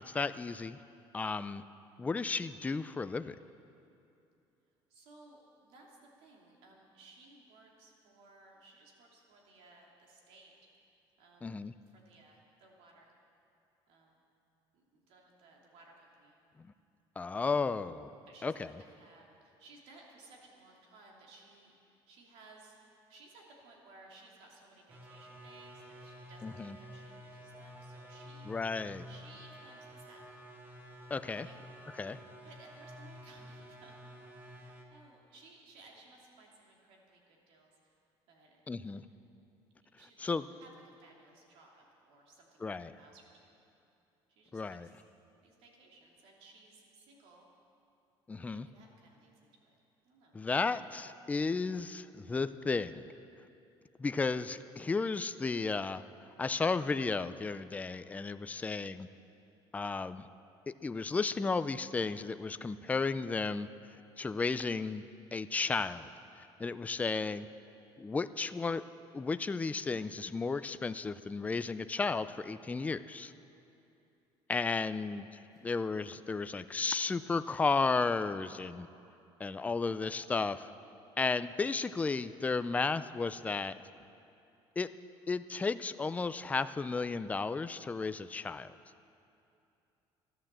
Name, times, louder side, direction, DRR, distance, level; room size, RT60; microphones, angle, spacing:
voice 1, 0.1-0.8 1.1-1.6 2.0-3.4 11.4-11.7 17.2-18.1 18.4-18.7 26.4-26.8 28.5-29.1 31.1-31.5 32.0-32.2 38.7-39.0 40.2-40.4 42.6-42.9 44.5-44.9 48.3-48.7 50.3-53.0 54.0-56.0 56.4-59.1 59.7-60.2 60.7-63.7 64.2-65.0 65.3-66.1 66.6-67.5 68.0-68.8 69.1-73.3 74.5-75.3 75.6-78.9 79.4-80.7 81.2-83.8 84.8-84.9 85.3-88.7, left 4 dB, 15° left, 13 dB, 0.4 m, -33 dB
voice 2, 4.9-10.5 11.2-13.1 13.9-14.2 14.7-16.4 18.3-28.5 29.1-30.2 31.1-31.6 32.4-37.9 38.3-39.0 39.9-40.7 41.0-43.6 44.3-45.0 45.4-47.5 48.5-49.7 50.0-50.4 58.5-58.9 75.5-75.7, right 2 dB, 75° right, -1 dB, 2.9 m, -59 dB
sound 1, 24.9-34.9, equal, 20° right, 1.5 m, -51 dB
14.0 x 11.0 x 7.5 m, 2.7 s
cardioid pair, 120°, 10 cm